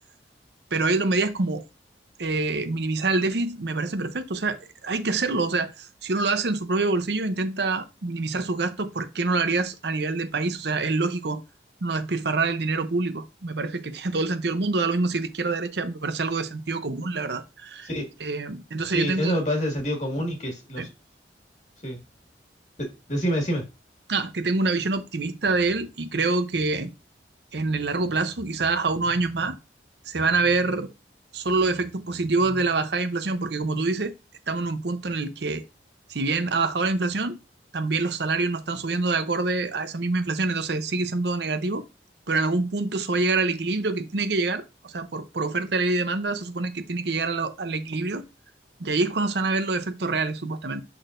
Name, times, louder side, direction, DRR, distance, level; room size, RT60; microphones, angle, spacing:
voice 1, 0.7-1.6 2.2-11.4 11.8-17.9 18.2-19.4 20.8-20.9 24.1-26.9 27.5-29.6 30.1-30.9 31.3-34.1 34.5-35.6 36.1-37.4 37.7-41.8 42.3-48.2 48.8-50.8, right 3 dB, 70° right, 0.8 m, -26 dB
voice 2, 18.9-20.9 21.8-22.0 22.8-23.7, equal, 40° left, 1.8 m, -27 dB
6.3 x 6.1 x 2.6 m
head